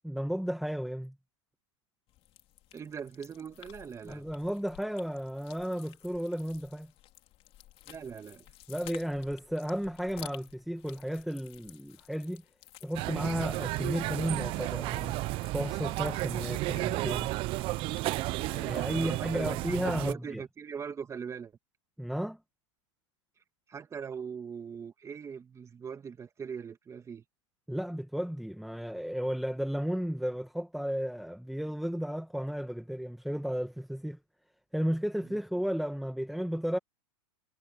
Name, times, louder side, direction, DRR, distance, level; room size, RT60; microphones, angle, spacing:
voice 1, 0.0-1.1 4.0-6.9 8.7-12.4 12.8-15.2 15.5-17.3 18.4-20.4 22.0-22.4 27.7-34.2 34.7-36.8, equal, ahead, 1.5 m, -33 dB
sound 1, 2.1-19.3, left 15 dB, 40° left, 3.6 m, -54 dB
voice 2, 2.7-4.3 7.9-8.5 18.9-21.6 23.7-27.2 35.2-35.4, right 6 dB, 20° right, 1.9 m, -41 dB
sound 2, 12.9-20.1, right 20 dB, 35° right, 0.4 m, -33 dB
hypercardioid pair, 125°, 16 cm